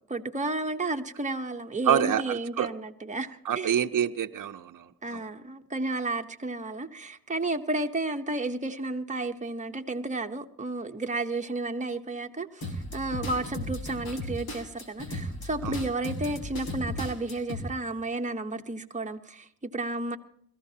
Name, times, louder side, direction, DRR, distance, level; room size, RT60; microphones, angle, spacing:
voice 1, 0.1-3.7 5.0-20.2, right 2 dB, 20° right, 1.0 m, -32 dB
voice 2, 1.8-2.7 3.4-5.2 15.6-15.8, right 9 dB, 60° right, 0.7 m, -27 dB
sound 1, 12.6-17.6, left 1 dB, 90° left, 2.4 m, -35 dB
22.0 x 14.0 x 2.8 m
cardioid pair, 50°, 36 cm